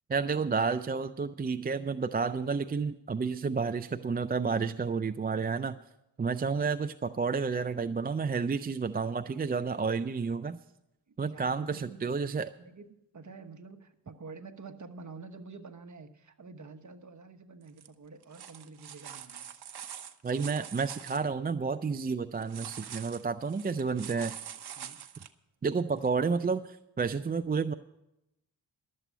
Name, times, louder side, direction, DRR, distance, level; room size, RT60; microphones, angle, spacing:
voice 1, 0.1-5.8 6.2-10.6 11.2-12.5 20.2-24.3 25.6-27.7, right 5 dB, 20° right, 10 dB, 0.4 m, -30 dB
voice 2, 11.2-12.1 12.6-19.5 24.0-24.3 24.8-25.0, right 4 dB, 40° right, 6 dB, 1.2 m, -48 dB
sound 1, 17.7-17.9 18.2-21.2 22.4-25.3 26.0-26.1, right 9 dB, 60° right, 1.0 m, -44 dB
12.5 x 7.6 x 8.1 m, 0.87 s
cardioid pair, 60°, 43 cm